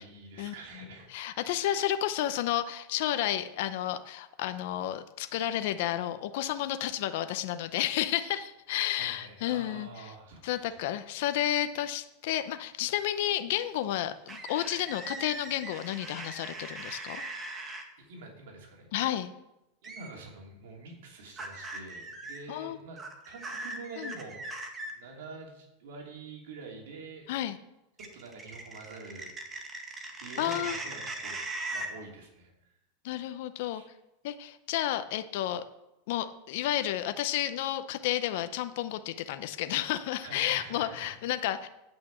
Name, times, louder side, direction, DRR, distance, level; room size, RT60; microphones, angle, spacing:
voice 1, 0.0-1.1 1.5-1.8 9.0-10.8 18.0-18.9 19.8-23.0 23.2-24.4 24.9-27.3 28.1-29.3 30.2-31.4 31.7-32.7 33.7-33.9 40.2-41.1, right 3 dB, 80° right, 0 dB, 3.0 m, -46 dB
voice 2, 1.1-9.9 10.4-17.2 18.9-19.3 22.5-22.8 24.0-24.1 27.3-27.6 30.4-30.8 33.0-33.8 34.2-35.6 36.1-41.7, left 12 dB, 65° left, 10 dB, 0.7 m, -31 dB
sound 1, 14.3-17.8 19.8-20.1 21.4-22.4 23.0-24.9 28.0-31.9, right 2 dB, 20° right, 1.6 m, -40 dB
9.2 x 5.9 x 7.4 m, 0.90 s
supercardioid pair, 140°, 0 cm